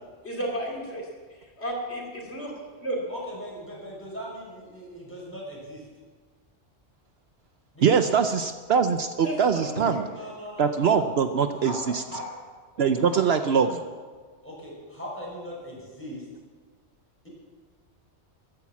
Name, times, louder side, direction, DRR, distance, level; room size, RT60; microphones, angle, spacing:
voice 1, 0.2-1.0 1.6-2.5 2.8-3.0 9.2-10.0, right 1 dB, 65° left, -1 dB, 3.0 m, -32 dB
voice 2, 3.1-5.8 7.7-8.2 10.1-11.1 11.5-12.3 12.8-13.7 14.4-16.3, equal, 10° left, -4 dB, 5.7 m, -39 dB
voice 3, 7.8-10.1 10.6-12.0 12.8-13.8, right 6 dB, 65° right, 9 dB, 0.9 m, -23 dB
14.5 x 10.5 x 7.4 m, 1.5 s
omnidirectional pair, 1.2 m